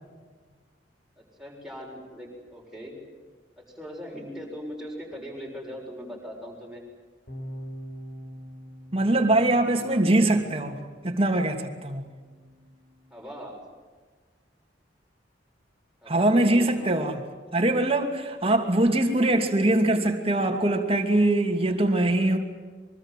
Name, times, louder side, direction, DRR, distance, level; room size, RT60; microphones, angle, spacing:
voice 1, 1.2-3.0 3.6-6.8 13.1-13.6 16.0-17.0, equal, 5° right, -1 dB, 6.9 m, -40 dB
sound 1, 7.3-13.5, equal, 55° left, 5.5 m, -45 dB
voice 2, 8.9-12.0 16.1-17.2 17.5-22.4, right 1 dB, 30° right, 4 dB, 2.7 m, -22 dB
24.5 x 24.0 x 7.6 m, 1.4 s
head